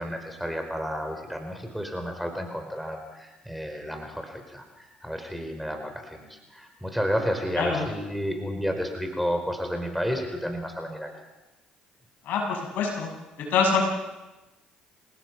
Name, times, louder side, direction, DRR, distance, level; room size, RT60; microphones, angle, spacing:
voice 1, 0.0-11.1, equal, ahead, 4 dB, 4.5 m, -31 dB
voice 2, 12.3-13.1 13.4-13.8, left 5 dB, 65° left, 0 dB, 7.2 m, -25 dB
28.5 x 17.0 x 6.0 m, 1.1 s
hypercardioid pair, 55°, 3 cm